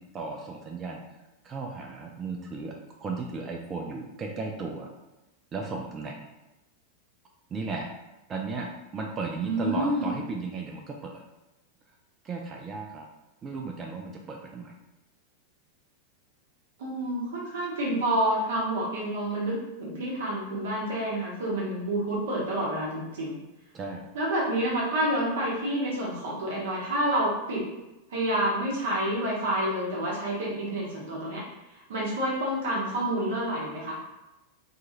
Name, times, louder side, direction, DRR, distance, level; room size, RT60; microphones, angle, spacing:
voice 1, 0.1-1.0 1.4-2.7 3.0-4.9 5.5-6.2 7.5-7.9 8.3-8.7 8.9-11.2 12.2-13.0 13.4-14.7 23.7-24.0, right 3 dB, 25° right, 1 dB, 0.3 m, -35 dB
voice 2, 9.4-10.1 16.8-23.3 24.1-27.7 28.1-31.4 31.7-34.0, right 1 dB, 60° right, -4 dB, 0.7 m, -28 dB
2.8 x 2.3 x 2.8 m, 0.98 s
figure-of-eight pair, 90°, 0 cm